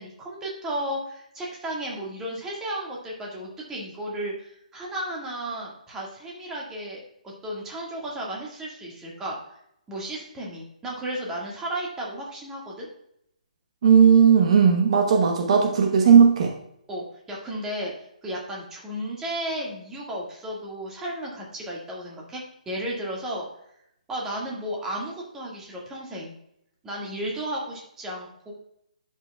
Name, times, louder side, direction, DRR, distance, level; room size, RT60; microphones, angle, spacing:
voice 1, 0.0-9.4 9.9-12.9 16.9-23.4 24.1-26.3 26.8-28.5, right 1 dB, 10° right, -3 dB, 1.9 m, -34 dB
voice 2, 13.8-16.5, right 7 dB, 50° right, 3 dB, 1.0 m, -16 dB
10.5 x 5.9 x 2.3 m, 0.76 s
hypercardioid pair, 150°, 4 cm